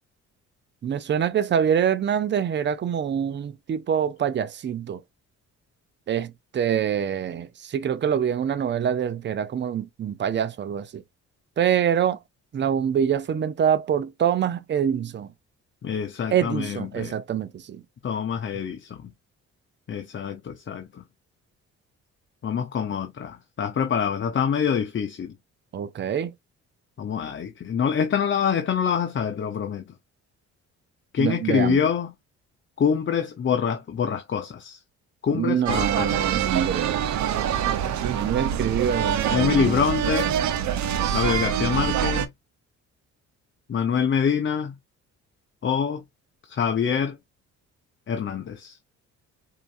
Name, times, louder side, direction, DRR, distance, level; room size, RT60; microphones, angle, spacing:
voice 1, 0.8-5.0 6.1-11.0 11.6-12.2 12.5-15.3 16.3-17.8 25.7-26.3 31.2-31.9 35.3-37.0 38.1-39.8, right 8 dB, 35° right, 0.6 m, -25 dB
voice 2, 15.8-17.1 18.0-19.1 19.9-21.0 22.4-25.4 27.0-29.9 31.1-32.1 32.8-34.8 35.2-36.5 39.3-40.4 41.1-42.3 43.7-44.7 45.6-46.0 46.4-47.2 48.1-48.8, left 7 dB, 40° left, 0.8 m, -25 dB
sound 1, 35.7-42.3, right 9 dB, 65° right, 0.8 m, -25 dB
4.5 x 2.8 x 2.5 m
cardioid pair, 90°, 30 cm